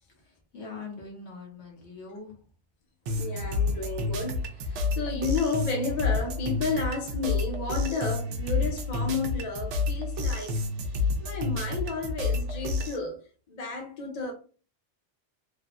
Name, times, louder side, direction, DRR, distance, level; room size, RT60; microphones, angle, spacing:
voice 1, 0.2-2.4, left 4 dB, 75° left, 1.1 m, -42 dB
sound 1, 3.1-13.0, left 3 dB, 90° right, 0.9 m, -29 dB
voice 2, 3.2-4.4 4.7-10.5 11.2-13.2 13.5-14.3, left 4 dB, 40° left, 0.7 m, -32 dB
3.3 x 2.0 x 2.4 m
omnidirectional pair, 1.2 m